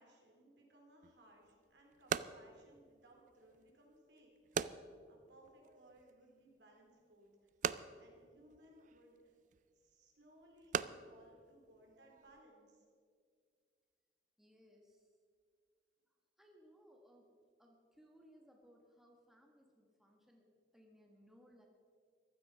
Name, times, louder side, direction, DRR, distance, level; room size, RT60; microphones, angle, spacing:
voice 1, 0.0-4.6 5.1-7.3 8.0-9.3 9.7-12.8, right 1 dB, 75° right, 0 dB, 3.7 m, -64 dB
sound 1, 1.0-12.4, right 6 dB, 45° right, 0.4 m, -45 dB
voice 2, 14.4-15.1 16.4-17.3 17.6-21.7, equal, ahead, 0 dB, 1.3 m, -65 dB
15.0 x 12.5 x 5.6 m, 2.1 s
head